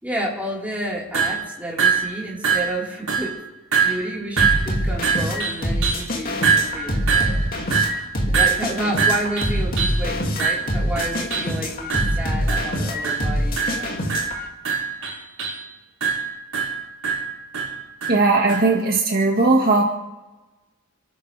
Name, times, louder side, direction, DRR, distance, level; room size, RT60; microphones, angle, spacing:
voice 1, 0.0-3.4 3.8-7.4 7.9-14.2, right 1 dB, 5° right, -5 dB, 4.5 m, -30 dB
sound 1, 1.1-1.5 1.8-2.2 2.4-2.8 3.1-3.4 3.7-4.1 4.4-6.1 6.4-10.1 10.4-11.6 11.9-12.2 12.5-12.8 13.0-13.3 13.6-15.6 16.0-18.7, right 6 dB, 75° right, 5.2 m, -23 dB
sound 2, 4.4-14.5, equal, 40° left, 2.6 m, -25 dB
voice 2, 18.1-19.8, right 3 dB, 45° right, -1 dB, 1.9 m, -18 dB
30.0 x 13.5 x 3.5 m, 1.1 s
head